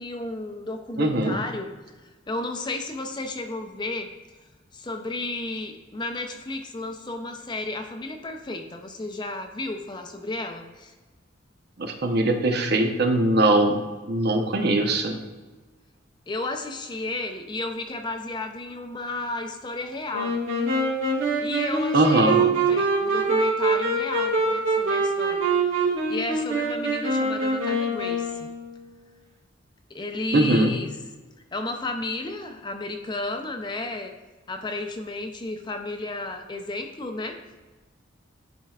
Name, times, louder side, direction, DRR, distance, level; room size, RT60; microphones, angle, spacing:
voice 1, 0.0-1.7 2.3-4.1 4.7-10.9 16.3-20.4 21.4-25.4 26.1-28.5 29.9-30.9 31.5-34.1 34.5-37.4, left 2 dB, 25° left, 5 dB, 0.5 m, -33 dB
voice 2, 1.0-1.4 11.8-13.8 14.0-15.2 21.9-22.4 30.3-30.7, right 1 dB, 55° right, 4 dB, 0.8 m, -21 dB
Wind instrument woodwind instrument, 20.1-28.9, right 3 dB, 90° right, 1.7 m, -24 dB
10.5 x 4.4 x 2.4 m, 1.2 s
head